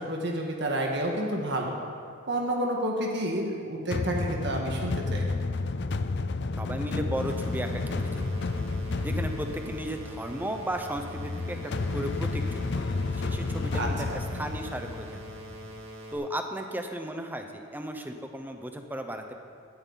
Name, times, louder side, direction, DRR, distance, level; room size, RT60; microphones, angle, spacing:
voice 1, 0.0-1.7 2.3-5.3 13.8-14.2, right 1 dB, 55° right, 0 dB, 1.7 m, -30 dB
sound 1, 3.9-15.8, left 3 dB, 55° left, 0.5 m, -31 dB
voice 2, 6.6-8.2 9.0-15.2 16.1-19.3, right 1 dB, 10° right, 5 dB, 0.8 m, -35 dB
sound 2, 7.1-16.1, right 1 dB, 80° right, 2.6 m, -44 dB
17.5 x 13.0 x 4.1 m, 2.2 s
head